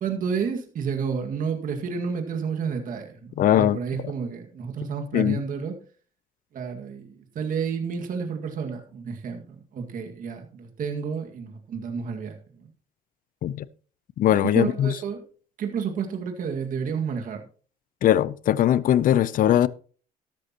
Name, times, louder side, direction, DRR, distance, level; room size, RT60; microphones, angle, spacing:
voice 1, 0.0-5.7 6.5-9.4 9.7-12.7 14.5-15.2 15.6-17.4, right 6 dB, 55° right, 2.0 m, -30 dB
voice 2, 3.4-3.8 5.1-5.4 13.4-13.7 14.2-15.0 18.0-19.7, left 11 dB, 55° left, 0.6 m, -20 dB
13.0 x 12.0 x 3.0 m
cardioid pair, 110°, 17 cm